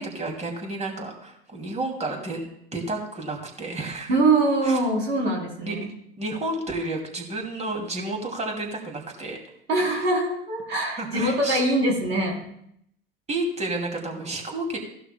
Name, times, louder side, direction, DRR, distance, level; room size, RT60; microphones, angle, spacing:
voice 1, 0.0-4.2 4.6-4.8 5.6-5.8 6.2-9.4 9.8-10.0 11.0-11.6 13.3-14.8, right 2 dB, 20° right, 2 dB, 2.6 m, -31 dB
voice 2, 4.1-5.9 9.7-12.4, right 2 dB, 80° right, -1 dB, 3.4 m, -23 dB
16.5 x 11.5 x 2.2 m, 0.70 s
hypercardioid pair, 80°, 31 cm